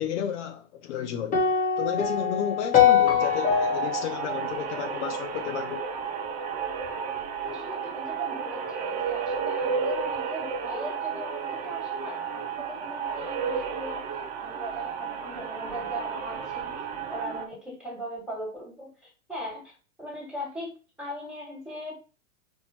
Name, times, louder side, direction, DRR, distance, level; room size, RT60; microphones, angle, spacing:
voice 1, 0.0-1.4 1.8-5.9, left 9 dB, 55° left, 0.7 m, -32 dB
sound 1, 1.3-5.6, left 7 dB, 20° left, 1.0 m, -23 dB
sound 2, 3.2-17.5, right 6 dB, 20° right, 0.4 m, -32 dB
voice 2, 7.5-14.1 14.4-19.7 20.0-20.7 21.0-22.1, equal, ahead, 1.7 m, -39 dB
4.4 x 2.4 x 4.3 m
hypercardioid pair, 125°, 42 cm